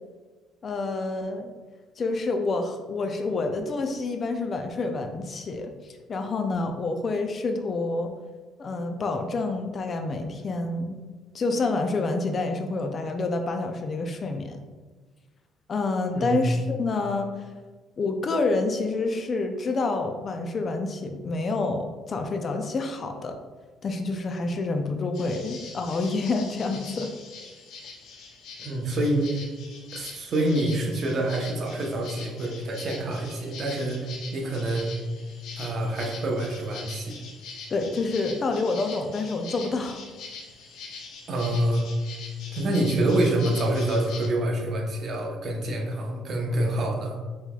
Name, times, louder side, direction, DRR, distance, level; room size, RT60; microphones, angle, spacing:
voice 1, 0.6-1.5 2.0-8.2 8.6-11.0 11.3-14.6 15.7-17.3 18.0-23.4 23.8-27.1 37.7-40.0, left 3 dB, 40° left, 5 dB, 0.4 m, -28 dB
voice 2, 16.1-16.5 28.6-29.4 29.9-34.9 35.6-37.2 41.3-41.9 42.5-47.2, right 1 dB, 50° right, 0 dB, 0.9 m, -26 dB
sound 1, 25.1-44.3, left 4 dB, 70° left, 0.7 m, -43 dB
5.6 x 3.0 x 2.3 m, 1.4 s
cardioid pair, 95°, 0 cm